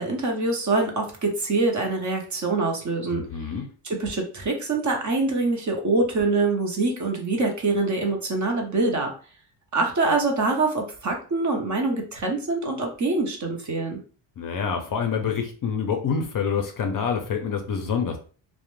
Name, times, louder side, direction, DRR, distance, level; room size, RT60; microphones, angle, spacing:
voice 1, 0.0-3.2 3.8-9.1 9.7-14.0, right 3 dB, 35° right, 2 dB, 0.6 m, -24 dB
voice 2, 3.1-3.7 14.4-18.2, left 6 dB, 45° left, 4 dB, 0.5 m, -27 dB
2.4 x 2.1 x 3.0 m, 0.40 s
cardioid pair, 125°, 49 cm